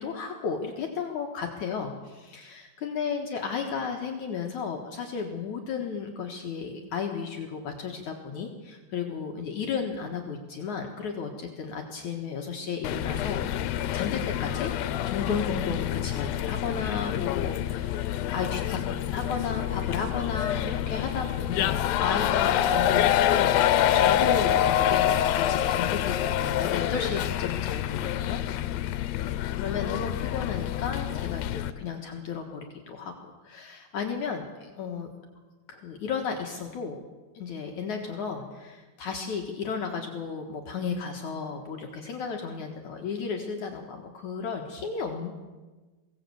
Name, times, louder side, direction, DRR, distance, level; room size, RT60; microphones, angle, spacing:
voice 1, 0.0-13.5 13.9-23.6 23.9-28.4 29.6-35.1 35.7-37.0 37.3-45.4, left 6 dB, 60° left, 2 dB, 2.7 m, -34 dB
sound 1, 12.8-31.7, left 11 dB, 85° left, 2.6 m, -26 dB
22.5 x 17.0 x 8.0 m, 1.3 s
omnidirectional pair, 4.1 m